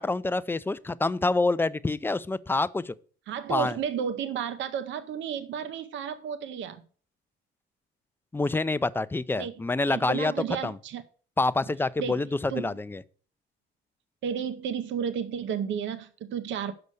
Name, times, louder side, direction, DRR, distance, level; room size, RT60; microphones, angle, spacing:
voice 1, 0.0-2.9 3.5-3.8 8.3-10.3 10.6-10.7 11.4-13.0, left 2 dB, 10° left, 0.3 m, -27 dB
voice 2, 3.3-6.8 9.4-9.6 9.9-11.0 12.0-12.7 14.2-16.7, right 8 dB, 70° right, 0.7 m, -32 dB
6.8 x 5.3 x 6.3 m
cardioid pair, 110°, 20 cm